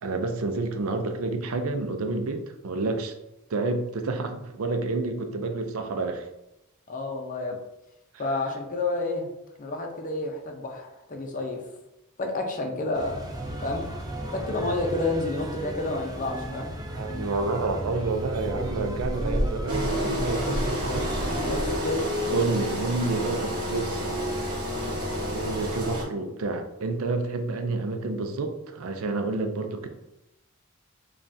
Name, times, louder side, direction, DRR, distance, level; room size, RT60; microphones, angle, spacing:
voice 1, 0.0-3.1 3.5-6.3 16.9-21.1 22.3-24.0 24.8-29.9, right 3 dB, 70° right, 7 dB, 0.5 m, -29 dB
voice 2, 6.9-7.6 8.2-9.3 9.6-11.6 12.2-13.2 13.6-13.9 14.3-16.7 21.5-22.1 24.6-24.7, left 2 dB, 35° left, 2 dB, 0.6 m, -30 dB
sound 1, 12.9-21.8, right 1 dB, 15° right, 0.4 m, -33 dB
Engine, 19.7-26.0, equal, 40° right, 1.1 m, -29 dB
5.1 x 2.3 x 2.7 m, 0.90 s
head